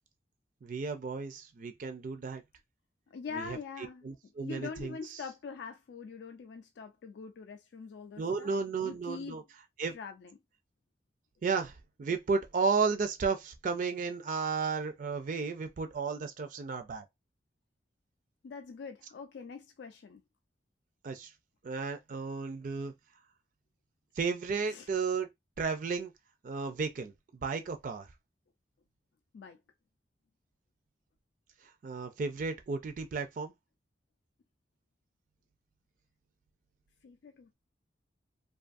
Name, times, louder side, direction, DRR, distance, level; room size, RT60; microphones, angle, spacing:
voice 1, 0.6-2.4 3.3-5.2 8.2-9.4 9.8-9.9 11.4-17.0 21.0-21.3 21.6-22.9 24.2-25.3 25.6-26.1 26.4-27.1 27.4-28.1 31.8-33.5, right 5 dB, 45° right, 0.3 m, -33 dB
voice 2, 3.1-9.4 9.9-10.4 18.4-20.2 24.7-24.9 29.3-29.6 37.0-37.5, left 5 dB, 70° left, 0.4 m, -44 dB
2.5 x 2.3 x 2.5 m
head